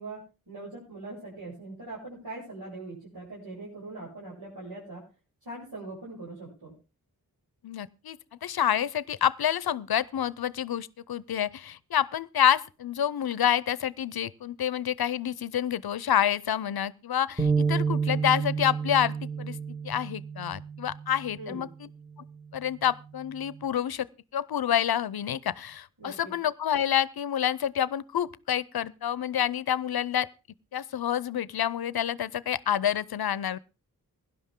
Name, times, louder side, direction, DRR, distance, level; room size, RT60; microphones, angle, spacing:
voice 1, 0.0-5.0 5.4-6.7 21.4-21.6 26.0-26.3, right 2 dB, 85° right, 7.7 m, -41 dB
voice 2, 7.6-19.6 19.8-21.9 22.5-24.1 24.3-30.3 30.7-33.6, left 10 dB, 80° left, 0.6 m, -28 dB
sound 1, 17.4-21.6 22.1-22.4 23.2-23.6, right 5 dB, 15° right, 1.6 m, -30 dB
17.0 x 11.0 x 3.7 m
cardioid pair, 55°, 37 cm